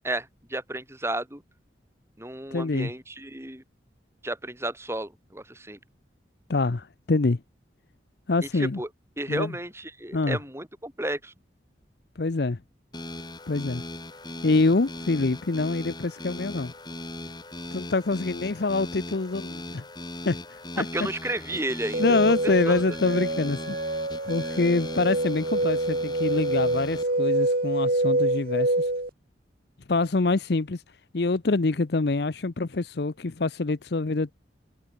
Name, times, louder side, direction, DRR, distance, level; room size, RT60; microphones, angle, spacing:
voice 1, 0.0-1.4 2.2-3.6 4.2-5.8 8.5-8.9 9.2-11.3 20.8-22.2 22.4-22.8, right 1 dB, 15° right, 3.7 m, -32 dB
voice 2, 2.5-2.9 6.5-7.4 8.3-8.8 9.3-9.5 10.1-10.4 12.2-12.6 13.5-13.8 14.4-16.7 17.7-19.8 20.2-20.4 20.8-20.9 22.0-23.8 24.2-28.9 29.9-30.8 31.1-34.3, left 3 dB, 60° left, 0.7 m, -25 dB
sound 1, 12.9-27.0, left 1 dB, 20° left, 2.7 m, -39 dB
sound 2, 21.9-29.1, right 1 dB, 50° right, 2.1 m, -26 dB
head